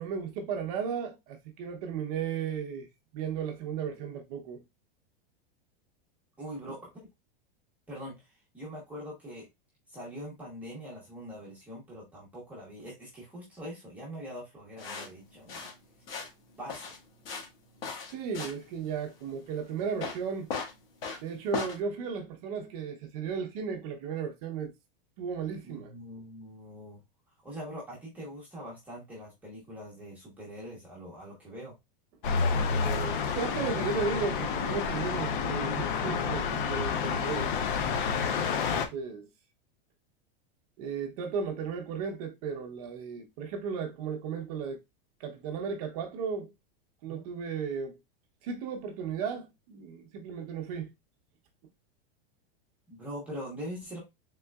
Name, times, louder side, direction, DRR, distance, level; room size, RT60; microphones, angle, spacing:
voice 1, 0.0-2.9 3.1-4.6 18.1-20.5 21.2-24.7 25.2-25.9 32.6-37.5 38.5-39.3 40.8-44.8 45.2-46.5 47.0-48.0 48.4-50.9, right 6 dB, 40° right, 0.7 m, -35 dB
voice 2, 6.4-6.9 7.9-9.5 9.9-15.7 16.6-16.9 25.6-27.0 27.4-31.7 47.0-47.2 52.9-54.0, equal, 5° right, 1.0 m, -43 dB
sound 1, 14.8-21.8, left 5 dB, 80° left, 1.5 m, -39 dB
sound 2, 32.2-38.9, left 5 dB, 60° left, 0.7 m, -29 dB
3.7 x 3.6 x 2.2 m
supercardioid pair, 175°, 29 cm